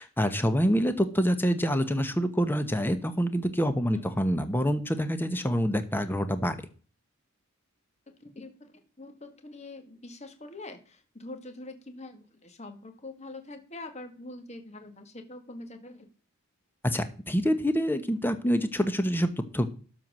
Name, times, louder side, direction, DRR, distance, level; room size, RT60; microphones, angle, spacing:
voice 1, 0.0-6.6 16.8-19.7, equal, 10° left, 10 dB, 0.9 m, -26 dB
voice 2, 8.1-16.1, left 2 dB, 30° left, 7 dB, 1.9 m, -44 dB
13.0 x 4.6 x 6.3 m, 0.39 s
head